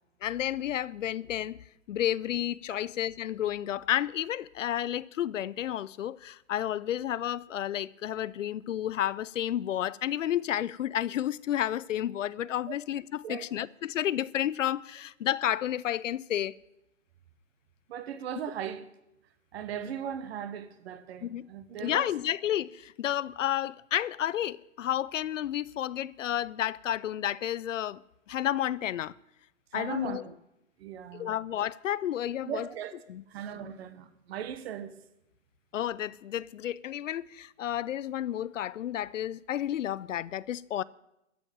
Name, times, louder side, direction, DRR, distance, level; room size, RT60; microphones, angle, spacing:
voice 1, 0.2-1.6 1.9-16.6 21.2-21.5 21.8-28.0 28.3-29.1 29.7-30.2 31.1-32.7 33.1-33.2 35.7-40.8, left 11 dB, 70° left, 0.6 m, -31 dB
voice 2, 17.9-18.9 19.5-22.1 29.7-30.3 30.8-31.3 32.4-32.9 33.3-34.9, right 9 dB, 50° right, 1.3 m, -38 dB
13.5 x 7.1 x 8.9 m
hypercardioid pair, 130°, 40 cm